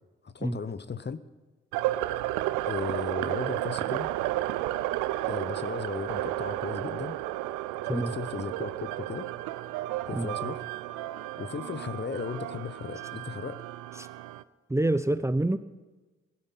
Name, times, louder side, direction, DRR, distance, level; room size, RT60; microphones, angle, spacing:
voice 1, 0.2-1.2 2.7-4.1 5.2-7.2 7.8-9.3 10.1-10.6 11.4-13.6, left 5 dB, 35° left, 14 dB, 1.0 m, -36 dB
sound 1, 1.7-14.4, right 15 dB, 80° right, 0.5 m, -32 dB
voice 2, 14.7-15.6, right 1 dB, 10° right, 12 dB, 0.8 m, -27 dB
17.0 x 13.0 x 5.6 m, 1.2 s
hypercardioid pair, 45°, 31 cm